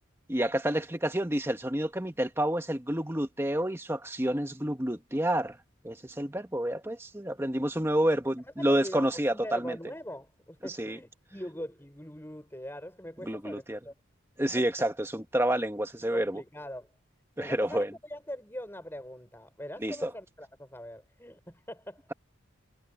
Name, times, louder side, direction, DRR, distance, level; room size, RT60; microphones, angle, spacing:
voice 1, 0.3-5.6 5.8-9.8 10.6-11.0 13.3-13.8 14.4-16.4 17.4-17.9 19.8-20.1, right 1 dB, 10° right, 1.3 m, -29 dB
voice 2, 8.4-13.9 14.6-14.7 16.0-16.9 17.4-22.1, equal, 10° left, 5.7 m, -42 dB
head